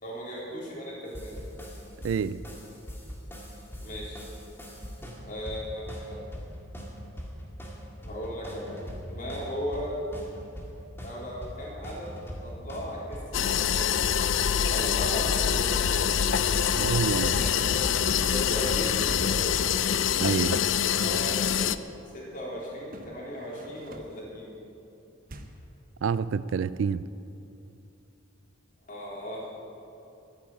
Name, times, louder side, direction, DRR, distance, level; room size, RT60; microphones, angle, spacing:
voice 1, 0.0-1.4 3.8-4.3 5.2-6.2 8.0-8.8 9.1-10.0 11.0-12.1 12.4-14.0 14.6-15.9 16.5-17.6 18.2-19.5 20.9-21.8 22.1-24.5 28.8-29.4, equal, 40° left, 4.0 m, -37 dB
sound 1, 1.1-19.8, equal, 10° left, 2.0 m, -41 dB
voice 2, 2.0-2.4 16.8-17.4 20.2-20.6 26.0-27.0, right 6 dB, 70° right, 0.3 m, -27 dB
sound 2, 13.3-21.8, left 8 dB, 65° left, 0.5 m, -25 dB
sound 3, 20.8-21.1 22.8-24.3 25.2-25.8, right 1 dB, 45° right, 1.0 m, -48 dB
13.5 x 10.0 x 8.7 m
head